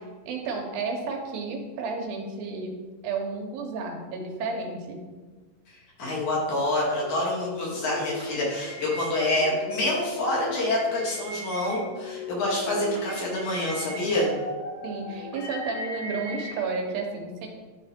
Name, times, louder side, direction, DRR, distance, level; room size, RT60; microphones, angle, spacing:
voice 1, 0.3-2.8 3.0-5.0 14.8-17.5, right 4 dB, 80° right, 2 dB, 2.8 m, -32 dB
voice 2, 6.0-14.3, left 1 dB, 60° left, -4 dB, 3.1 m, -27 dB
sound 1, 7.0-16.5, left 1 dB, 15° left, 1.3 m, -38 dB
11.0 x 4.0 x 4.4 m, 1.3 s
omnidirectional pair, 4.1 m